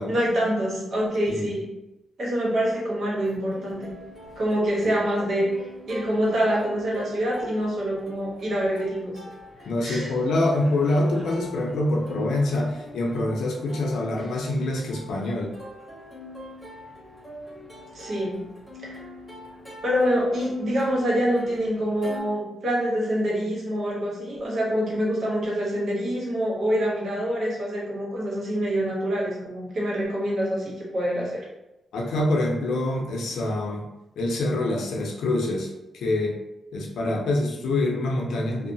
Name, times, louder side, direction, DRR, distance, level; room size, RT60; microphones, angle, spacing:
voice 1, 0.1-1.7 2.2-3.9 4.4-9.2 9.6-10.1 17.9-18.5 18.8-19.1 19.8-31.4, equal, 60° right, -5 dB, 1.0 m, -26 dB
Plucked string instrument, 3.2-22.2, left 1 dB, 10° left, 1.3 m, -43 dB
voice 2, 9.7-15.5 31.9-33.8 34.2-36.4 36.7-38.7, left 2 dB, 85° left, -1 dB, 0.5 m, -25 dB
2.7 x 2.0 x 2.6 m, 0.95 s
cardioid pair, 115°, 0 cm